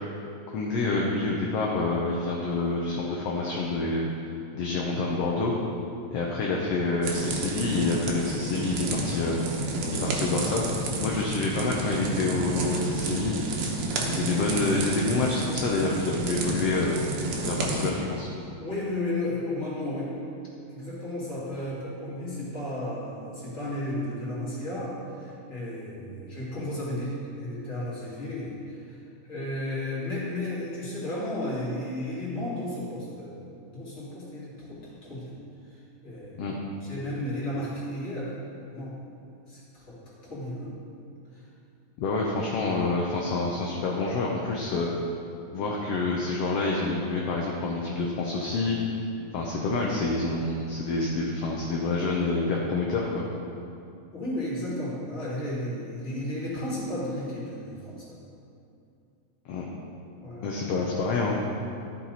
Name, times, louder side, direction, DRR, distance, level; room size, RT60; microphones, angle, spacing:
voice 1, 0.5-4.0 4.5-5.5 6.1-9.4 10.0-10.6 11.0-13.3 14.0-16.9 17.4-18.3 36.4-36.5 42.0-44.9 45.5-48.8 49.3-53.2 59.5-59.6 60.4-61.4, left 3 dB, 70° left, -2 dB, 1.6 m, -27 dB
sound 1, 7.0-17.9, right 2 dB, 75° right, 2.2 m, -30 dB
voice 2, 18.6-20.1 20.7-29.0 29.2-35.3 35.7-36.5 36.8-38.4 38.7-39.0 39.5-40.8 41.3-41.4 54.1-58.2 60.2-60.6, left 1 dB, 25° left, -9 dB, 2.6 m, -34 dB
13.5 x 5.9 x 4.1 m, 2.6 s
omnidirectional pair, 3.4 m